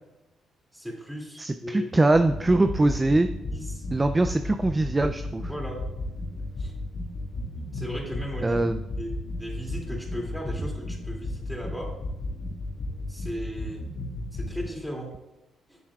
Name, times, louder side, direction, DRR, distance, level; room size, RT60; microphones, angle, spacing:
voice 1, 0.7-1.9 3.5-3.8 5.5-5.8 6.6-6.7 7.7-8.6 9.0-9.1 9.4-11.9 13.1-13.8 14.3-15.1 15.7-15.8, equal, ahead, -1 dB, 2.5 m, -36 dB
voice 2, 1.4-3.3 3.9-5.5 8.4-8.8, right 2 dB, 20° right, 8 dB, 0.4 m, -22 dB
sound 1, 2.1-14.7, left 2 dB, 85° left, 1.8 m, -34 dB
11.0 x 7.3 x 2.4 m, 0.99 s
cardioid pair, 90°, 0 cm